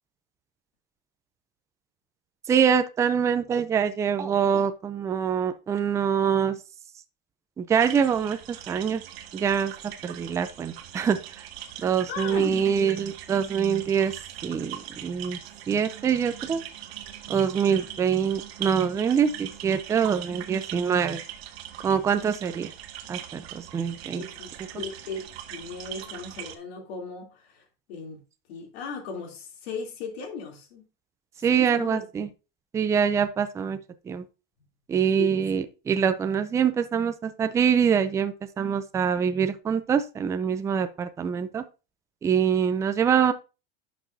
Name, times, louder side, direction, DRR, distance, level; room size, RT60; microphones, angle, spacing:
voice 1, 2.5-6.6 7.6-9.0 9.3-9.7 10.0-11.4 11.8-14.1 14.4-15.4 15.7-16.6 17.3-21.2 21.8-22.7 23.1-24.2 31.4-32.3 32.7-33.8 34.1-34.2 34.9-41.6 42.2-43.3, right 7 dB, 10° right, 0.4 m, -24 dB
sound 1, 7.7-26.6, right 11 dB, 80° right, 1.5 m, -41 dB
voice 2, 12.1-12.9 17.7-18.0 24.0-25.2 25.5-28.2 28.5-30.8 31.5-32.0 35.1-35.4, left 5 dB, 80° left, 3.1 m, -37 dB
11.0 x 6.1 x 2.7 m
supercardioid pair, 155°, 31 cm